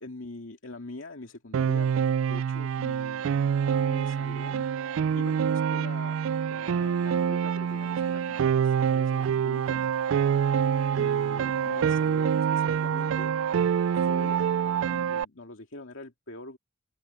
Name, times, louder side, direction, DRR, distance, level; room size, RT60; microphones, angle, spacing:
voice 1, 0.0-2.0 2.2-3.3 3.8-4.7 5.1-9.9 10.9-13.3 14.0-16.6, left 2 dB, 85° left, 2.3 m, -44 dB
Piano, 1.5-15.2, right 7 dB, 80° right, 0.3 m, -26 dB
sound 1, 7.6-13.1, right 3 dB, 25° right, 2.8 m, -55 dB
open air
head